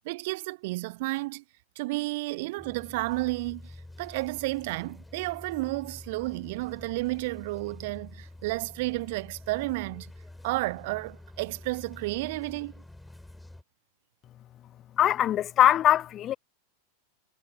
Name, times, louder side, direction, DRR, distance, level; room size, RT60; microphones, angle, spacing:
voice 1, 0.0-1.4 1.8-3.7 4.0-10.1 10.4-12.7, right 22 dB, 50° right, 0.8 m, -32 dB
sound 1, 2.6-13.6, left 1 dB, 5° left, 2.9 m, -48 dB
voice 2, 15.0-16.4, left 11 dB, 30° left, 0.3 m, -22 dB
figure-of-eight pair, 90°, 0 cm